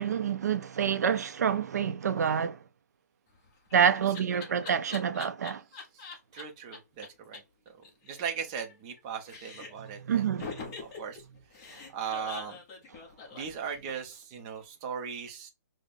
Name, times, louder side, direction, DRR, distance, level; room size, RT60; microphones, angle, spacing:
voice 1, 0.0-2.6 3.7-5.6 10.1-10.7, right 7 dB, 70° right, 0.4 m, -27 dB
Laughter, 3.3-6.4 6.7-6.8 7.0-7.1 7.3-7.4 7.7-9.0 9.3-9.9 10.4-14.1, left 4 dB, 20° left, 0.7 m, -44 dB
voice 2, 6.3-7.4 8.1-10.4 10.8-11.2 11.9-12.6 13.3-15.5, right 7 dB, 20° right, 0.5 m, -38 dB
5.1 x 2.0 x 2.5 m
hypercardioid pair, 175°, 9 cm